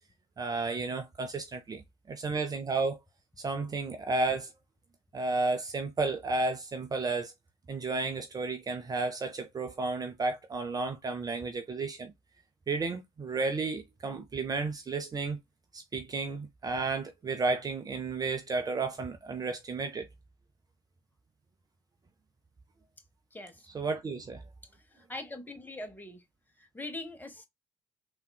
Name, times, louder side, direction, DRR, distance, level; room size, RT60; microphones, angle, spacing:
voice 1, 0.4-1.8 2.1-3.0 3.4-4.5 5.1-7.3 7.7-12.1 12.7-15.4 15.7-20.1 23.7-24.4, right 3 dB, 30° right, 0.6 m, -32 dB
voice 2, 23.3-23.7 24.7-26.2 26.6-27.5, left 2 dB, 15° left, 0.9 m, -42 dB
3.5 x 2.2 x 2.2 m
figure-of-eight pair, 50°, 13 cm